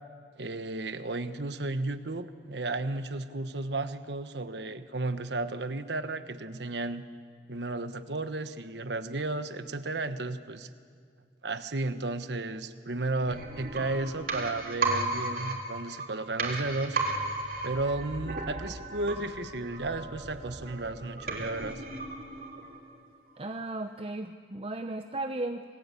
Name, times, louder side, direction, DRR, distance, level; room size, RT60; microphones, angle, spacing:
voice 1, 0.4-7.0 7.5-10.7 11.4-17.0 17.6-21.8, right 2 dB, 80° right, 10 dB, 1.2 m, -33 dB
sound 1, 13.3-23.0 23.3-23.4, right 2 dB, 55° right, 3.8 m, -35 dB
voice 2, 23.4-25.6, right 2 dB, 30° right, 6 dB, 0.7 m, -35 dB
28.5 x 20.5 x 8.4 m, 2.2 s
head